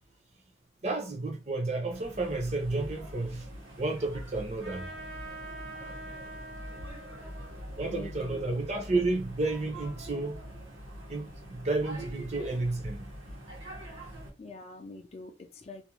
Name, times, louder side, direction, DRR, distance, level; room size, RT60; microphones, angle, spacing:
voice 1, 0.8-3.5 3.8-4.9 7.8-10.4 11.1-13.1, right 2 dB, 35° right, 0.6 m, -31 dB
sound 1, 1.9-14.3, equal, 90° right, 1.1 m, -44 dB
Trumpet, 4.6-9.6, right 2 dB, 65° right, 0.9 m, -46 dB
voice 2, 7.8-8.5 14.4-15.8, left 3 dB, 30° left, 0.3 m, -45 dB
2.5 x 2.1 x 2.9 m
head